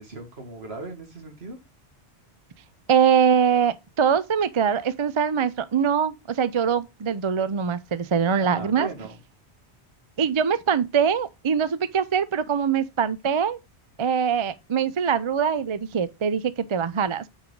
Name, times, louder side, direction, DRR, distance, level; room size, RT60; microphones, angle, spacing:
voice 1, 0.0-1.6 8.4-9.2, right 3 dB, 70° right, 2.2 m, -38 dB
voice 2, 2.9-8.9 10.2-13.6 14.0-17.3, right 7 dB, 40° right, 0.5 m, -23 dB
8.7 x 4.9 x 3.8 m
omnidirectional pair, 1.1 m